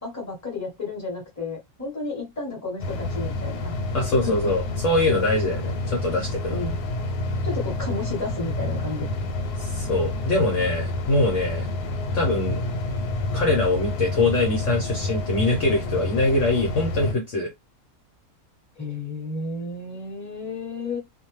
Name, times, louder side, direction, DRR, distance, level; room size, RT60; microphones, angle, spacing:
voice 1, 0.0-3.7 4.2-4.5 6.5-6.8 7.4-9.1 18.7-21.0, left 3 dB, 10° left, 1.1 m, -32 dB
sound 1, 2.8-17.1, left 2 dB, 85° left, 1.2 m, -29 dB
voice 2, 3.9-6.6 9.6-11.7 12.1-12.6 13.3-17.5, left 2 dB, 60° left, 1.0 m, -23 dB
2.6 x 2.1 x 3.0 m
omnidirectional pair, 1.6 m